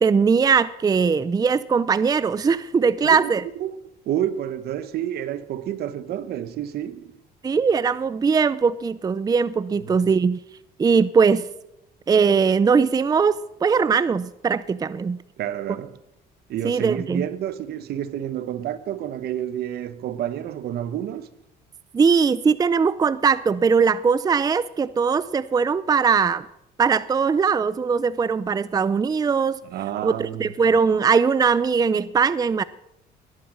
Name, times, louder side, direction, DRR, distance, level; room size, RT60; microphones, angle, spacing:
voice 1, 0.0-3.4 7.4-10.4 10.8-11.5 12.1-15.2 16.6-17.3 21.9-26.5 26.8-29.6 30.0-32.6, right 5 dB, 20° right, 0.5 m, -20 dB
voice 2, 3.0-3.8 4.1-7.2 9.9-10.0 15.4-16.0 16.5-21.3 29.6-30.5, right 11 dB, 70° right, 1.1 m, -29 dB
19.0 x 11.0 x 6.3 m
cardioid pair, 110°, 17 cm